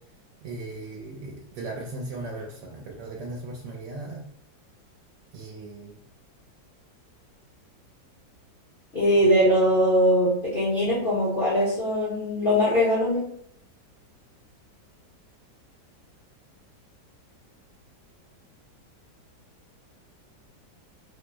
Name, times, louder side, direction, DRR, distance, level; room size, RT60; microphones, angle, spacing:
voice 1, 0.4-4.2 5.3-6.0, right 2 dB, 75° right, -2 dB, 1.2 m, -37 dB
voice 2, 8.9-13.3, equal, 55° left, -8 dB, 0.6 m, -21 dB
3.1 x 2.0 x 3.3 m, 0.71 s
omnidirectional pair, 1.9 m